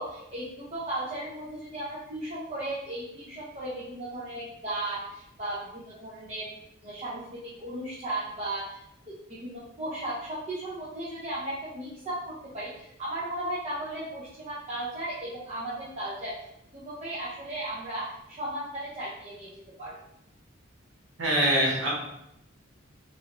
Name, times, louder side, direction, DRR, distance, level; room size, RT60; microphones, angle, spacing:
voice 1, 0.0-6.5 6.8-16.4 16.7-19.5 19.8-19.9, right 1 dB, 35° right, -7 dB, 0.6 m, -36 dB
voice 2, 21.2-21.9, right 1 dB, 75° right, -4 dB, 0.9 m, -23 dB
3.1 x 2.8 x 2.5 m, 0.82 s
head